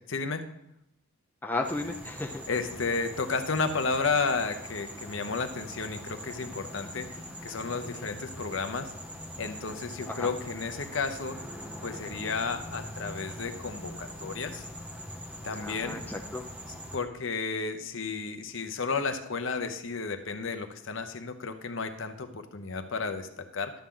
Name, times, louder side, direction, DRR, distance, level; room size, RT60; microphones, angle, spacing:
voice 1, 0.1-0.4 2.5-8.9 9.4-11.4 11.8-14.7 15.4-16.0 16.7-23.7, left 4 dB, 60° left, 8 dB, 0.8 m, -32 dB
voice 2, 1.4-2.4 7.8-8.1 10.1-10.3 15.6-16.4, left 2 dB, 10° left, 1 dB, 0.5 m, -34 dB
sound 1, 1.6-17.0, equal, 5° right, 0.9 m, -42 dB
11.5 x 7.3 x 3.8 m, 0.78 s
head